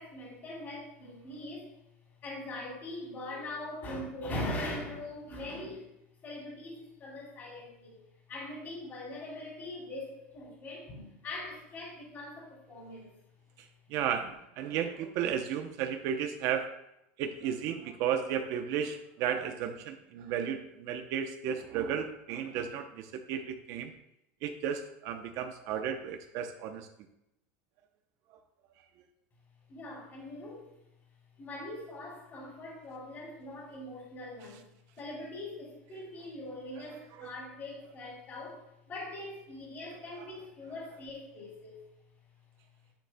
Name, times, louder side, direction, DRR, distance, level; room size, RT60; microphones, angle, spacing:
voice 1, 0.0-1.7 2.2-5.9 6.2-8.0 8.3-13.1 29.7-30.7 31.4-34.6 35.0-38.6 38.9-41.9, left 1 dB, 30° left, -3 dB, 3.0 m, -41 dB
voice 2, 13.6-16.7 17.2-23.9 24.4-26.9 37.2-37.3 40.2-40.3, right 8 dB, 50° right, 7 dB, 0.7 m, -34 dB
10.0 x 9.0 x 2.2 m, 0.83 s
supercardioid pair, 150°, 7 cm